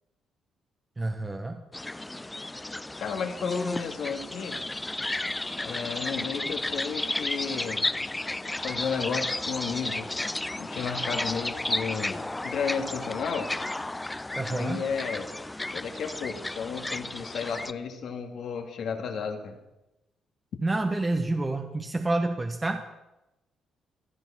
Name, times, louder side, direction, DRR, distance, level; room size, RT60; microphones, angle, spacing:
voice 1, 1.0-1.6 14.4-14.8 20.6-22.8, right 2 dB, 20° right, 5 dB, 1.2 m, -28 dB
sound 1, 1.7-17.7, left 2 dB, 15° left, 0.5 m, -33 dB
voice 2, 3.0-4.6 5.6-7.9 8.4-10.1 10.6-13.5 14.5-15.3 15.7-19.6, left 6 dB, 65° left, 4 dB, 2.2 m, -33 dB
16.5 x 12.0 x 5.9 m, 0.95 s
cardioid pair, 90°, 0 cm